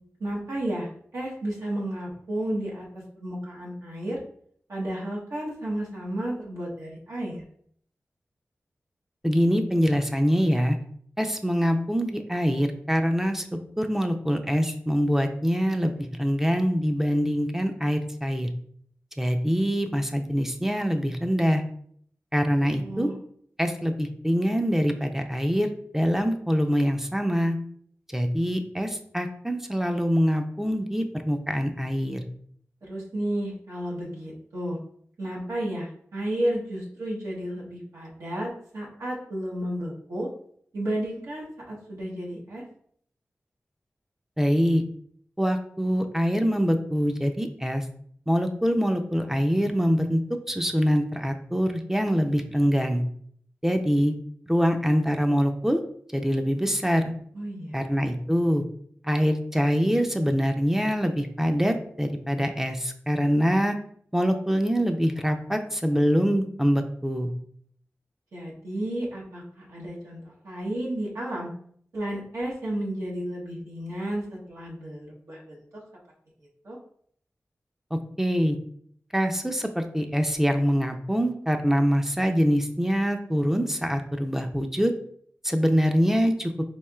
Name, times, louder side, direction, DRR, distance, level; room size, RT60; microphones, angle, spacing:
voice 1, 0.2-4.2 4.7-7.4 22.5-23.1 32.8-34.8 35.2-40.3 40.7-42.6 57.3-58.1 68.3-71.5 71.9-75.6 76.6-76.8, right 1 dB, 90° right, -5 dB, 1.0 m, -32 dB
voice 2, 9.2-10.8 11.2-13.4 13.8-15.9 16.2-18.5 19.2-21.6 22.3-23.1 23.6-25.7 25.9-27.6 28.1-32.2 44.4-44.8 45.4-47.8 48.3-50.2 50.5-53.0 53.6-54.1 54.5-55.8 56.1-57.1 57.7-58.6 59.0-63.8 64.1-67.3 78.2-78.6 79.1-84.9 85.4-86.5, equal, 10° right, 5 dB, 0.4 m, -24 dB
4.3 x 2.9 x 2.3 m, 0.63 s
cardioid pair, 50°, 5 cm